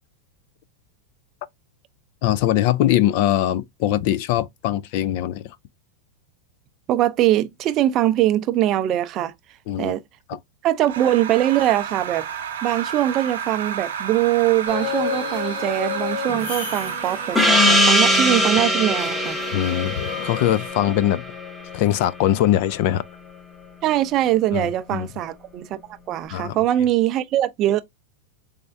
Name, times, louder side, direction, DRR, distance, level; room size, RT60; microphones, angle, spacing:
voice 1, 2.2-5.6 9.7-9.9 10.3-10.4 19.5-21.2 21.7-23.0 24.5-25.1 26.3-26.6, left 12 dB, 55° left, 0.4 m, -22 dB
voice 2, 6.9-9.3 9.8-10.0 10.6-12.3 12.6-19.4 23.8-25.8 26.1-27.8, right 13 dB, 40° right, 0.4 m, -22 dB
sound 1, 10.9-18.5, right 7 dB, 85° right, 1.0 m, -31 dB
sound 2, 14.7-20.7, left 6 dB, 75° left, 1.9 m, -32 dB
Gong, 17.4-22.4, left 1 dB, 10° left, 0.8 m, -21 dB
3.5 x 3.3 x 2.5 m
supercardioid pair, 130°, 0 cm